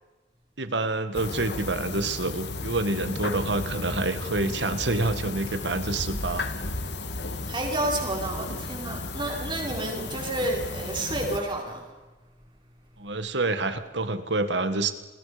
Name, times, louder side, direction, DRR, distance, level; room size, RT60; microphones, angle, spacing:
voice 1, 0.6-6.5 13.0-14.9, right 2 dB, 90° right, 10 dB, 1.8 m, -27 dB
sound 1, 1.1-11.4, left 2 dB, 70° left, 2.1 m, -34 dB
voice 2, 7.5-11.8, right 1 dB, 30° right, 0 dB, 5.3 m, -30 dB
29.5 x 21.0 x 5.2 m, 1.2 s
head